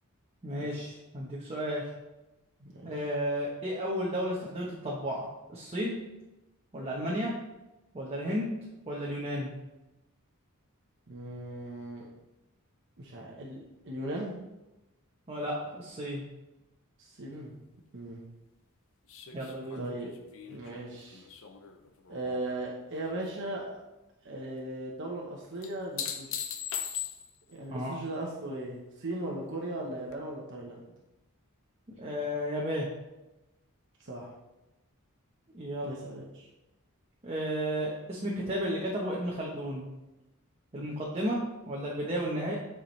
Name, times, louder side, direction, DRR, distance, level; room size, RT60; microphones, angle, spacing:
voice 1, 0.4-1.8 2.8-6.0 6.7-7.3 7.9-8.5 8.9-9.5 15.3-16.2 19.3-19.9 27.7-28.0 32.0-32.9 35.5-36.0 37.2-39.9 40.7-41.4 41.7-42.5, equal, 25° right, -4 dB, 1.0 m, -33 dB
voice 2, 2.6-2.9 11.1-12.1 13.0-14.4 17.0-17.5 17.9-18.2 19.8-20.1 20.5-21.2 22.1-23.8 24.2-26.4 27.5-30.8 34.0-34.3 35.8-36.5, right 1 dB, 55° right, -3 dB, 1.0 m, -38 dB
sound 1, 19.1-22.6 22.9-23.5 25.6-27.5 30.1-30.2, left 8 dB, 65° left, 0.7 m, -39 dB
8.8 x 4.9 x 3.2 m, 1.0 s
head